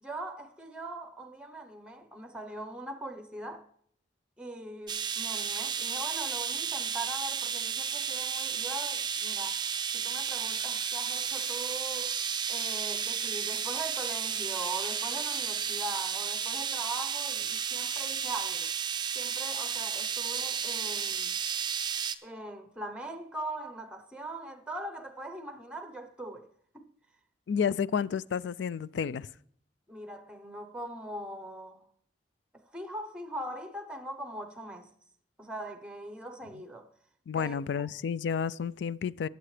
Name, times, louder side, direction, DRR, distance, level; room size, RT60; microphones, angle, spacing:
voice 1, 0.0-3.6 4.4-9.6 9.9-12.1 12.5-18.7 19.1-21.4 22.2-26.5 26.7-26.9 29.9-31.8 32.7-34.9 35.4-36.9 37.3-37.9, right 1 dB, 5° right, 0.8 m, -41 dB
sound 1, 4.9-22.2, right 7 dB, 25° right, 0.5 m, -33 dB
voice 2, 27.5-29.3 37.3-39.3, left 7 dB, 75° left, 0.3 m, -31 dB
19.0 x 7.9 x 3.3 m
head